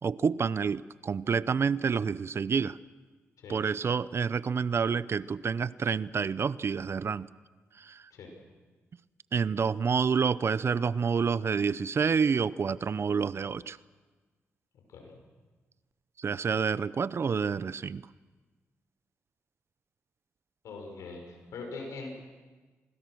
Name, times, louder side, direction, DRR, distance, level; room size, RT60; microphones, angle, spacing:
voice 1, 0.0-2.8 3.5-7.3 7.8-8.1 9.3-13.8 16.2-18.0, right 6 dB, 50° right, 18 dB, 0.7 m, -28 dB
voice 2, 20.6-22.2, left 3 dB, 80° left, 3 dB, 5.8 m, -42 dB
26.0 x 20.0 x 6.3 m, 1.3 s
supercardioid pair, 55°, 5 cm